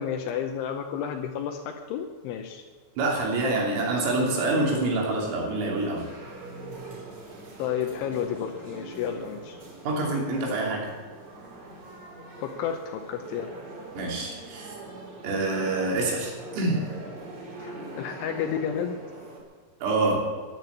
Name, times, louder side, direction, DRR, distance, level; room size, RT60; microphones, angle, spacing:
voice 1, 0.0-2.6 7.6-9.6 12.4-13.5 17.6-19.0, left 8 dB, 80° left, 4 dB, 3.2 m, -31 dB
voice 2, 3.0-6.1 9.9-10.9 14.0-14.8 15.2-16.8 19.8-20.2, right 2 dB, 90° right, -1 dB, 5.7 m, -26 dB
sound 1, 4.3-19.4, right 2 dB, 40° right, 3.9 m, -42 dB
13.5 x 10.0 x 8.3 m, 1.5 s
omnidirectional pair, 5.7 m